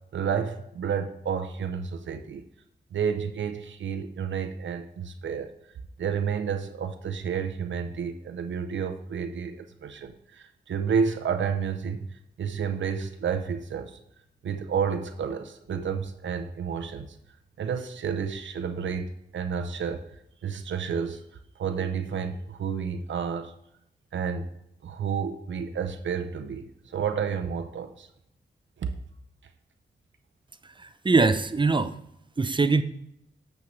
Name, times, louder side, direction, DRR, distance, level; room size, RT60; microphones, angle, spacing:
voice 1, 0.1-2.4 2.9-5.5 6.0-14.0 14.4-17.2 17.6-20.1 20.4-21.2 21.6-23.5 24.1-24.5 24.8-28.1 28.8-28.9, right 6 dB, 85° right, 7 dB, 0.5 m, -30 dB
voice 2, 30.6-32.0 32.4-32.8, right 3 dB, 25° right, 12 dB, 0.5 m, -23 dB
8.3 x 6.5 x 3.1 m, 0.80 s
cardioid pair, 70°, 19 cm